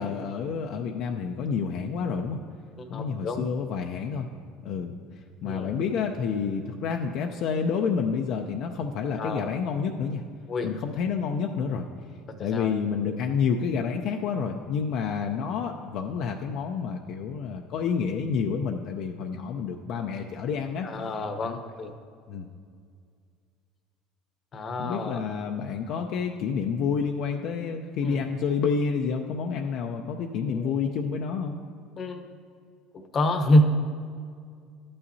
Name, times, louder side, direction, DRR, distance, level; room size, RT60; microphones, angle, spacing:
voice 1, 0.0-2.4 2.9-4.3 4.6-5.0 5.4-10.2 10.6-11.9 12.4-20.9 21.4-21.6 22.3-22.5 24.8-31.6, left 6 dB, 60° left, 3 dB, 0.5 m, -29 dB
voice 2, 2.9-3.5 5.4-5.8 9.1-9.5 10.5-10.7 12.5-12.7 20.8-21.9 24.5-25.2 28.0-28.2 30.4-30.9 32.0-32.3 32.9-33.7, left 1 dB, 40° left, 6 dB, 0.8 m, -27 dB
12.5 x 8.6 x 2.7 m, 2.2 s
supercardioid pair, 110°, 0 cm